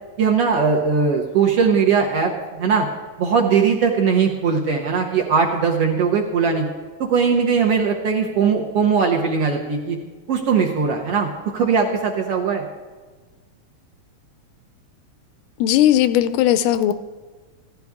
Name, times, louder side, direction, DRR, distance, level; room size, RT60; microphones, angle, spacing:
voice 1, 0.2-2.9 3.2-6.7 7.0-10.0 10.3-12.6, right 5 dB, 65° right, 0 dB, 1.6 m, -19 dB
voice 2, 15.6-16.9, left 12 dB, 90° left, 13 dB, 2.1 m, -17 dB
15.5 x 12.5 x 3.5 m, 1.4 s
omnidirectional pair, 3.5 m